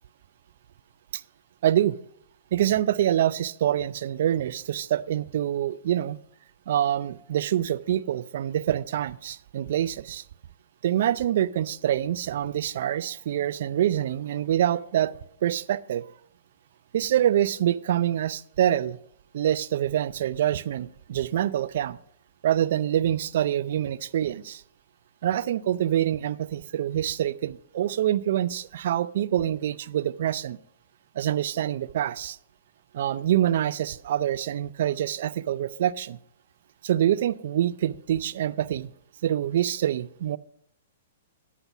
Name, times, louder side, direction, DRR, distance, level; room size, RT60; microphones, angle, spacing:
voice 1, 1.6-2.0 2.5-6.2 6.7-10.2 10.8-15.1 15.4-16.0 16.9-19.0 19.3-22.0 22.4-24.6 25.2-30.6 31.1-32.4 32.9-36.2 36.8-38.9 39.2-40.4, right 11 dB, 60° right, 0.5 m, -25 dB
9.6 x 5.8 x 6.9 m
hypercardioid pair, 120°, 0 cm